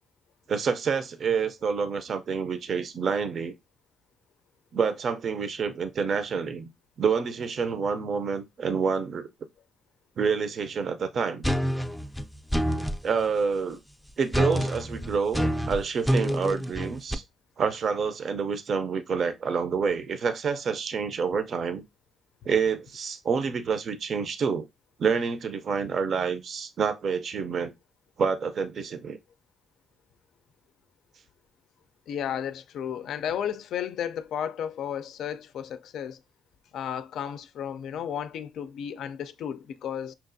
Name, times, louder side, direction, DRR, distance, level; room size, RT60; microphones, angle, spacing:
voice 1, 0.5-3.5 4.7-6.7 7.0-9.3 10.2-11.4 13.0-13.8 14.2-17.2 17.6-21.8 22.5-24.7 25.0-27.7 28.2-29.2, right 5 dB, 55° right, 0.5 m, -28 dB
sound 1, 11.4-13.0 14.3-17.1, equal, ahead, 0.4 m, -27 dB
voice 2, 32.1-36.2 36.7-40.1, left 9 dB, 75° left, 0.4 m, -33 dB
5.6 x 2.4 x 2.5 m
cardioid pair, 90°, 0 cm